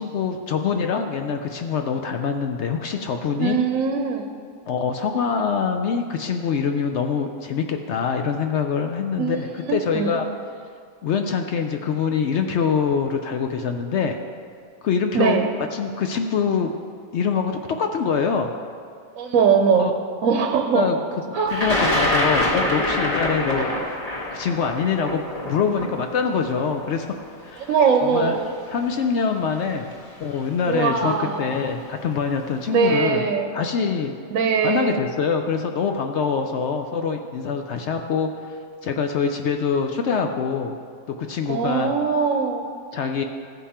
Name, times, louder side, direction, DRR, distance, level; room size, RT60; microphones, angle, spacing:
voice 1, 0.0-3.6 4.7-10.3 11.0-14.2 14.8-15.4 15.7-16.7 17.1-18.5 19.8-19.9 20.7-21.0 21.3-23.7 24.3-27.1 27.4-27.7 28.1-28.4 28.7-29.9 30.2-33.3 33.5-34.1 34.6-38.3 38.8-40.8 41.2-41.9 42.9-43.2, left 6 dB, 65° left, 5 dB, 0.7 m, -24 dB
voice 2, 3.4-4.3 9.2-10.2 15.1-15.5 19.1-19.9 20.2-20.8 21.3-21.6 27.6-28.4 30.3-30.4 30.7-31.6 32.7-33.5 34.3-35.0 41.5-42.7, right 6 dB, 70° right, 4 dB, 1.0 m, -21 dB
Thunder, 21.5-27.5 28.4-28.5 29.7-29.9 30.2-30.7, left 1 dB, 25° left, 1.5 m, -25 dB
14.5 x 5.4 x 4.2 m, 2.2 s
omnidirectional pair, 1.5 m